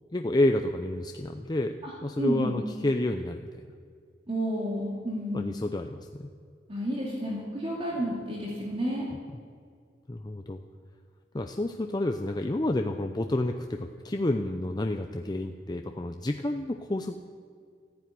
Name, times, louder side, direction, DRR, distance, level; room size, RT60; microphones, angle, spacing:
voice 1, 0.1-1.8 2.0-3.5 5.3-6.3 10.1-10.6 11.3-17.2, left 1 dB, 25° left, 5 dB, 0.6 m, -29 dB
voice 2, 2.2-2.6 4.3-5.5 6.7-9.1, equal, 35° right, -4 dB, 2.5 m, -31 dB
14.5 x 10.5 x 9.4 m, 2.1 s
head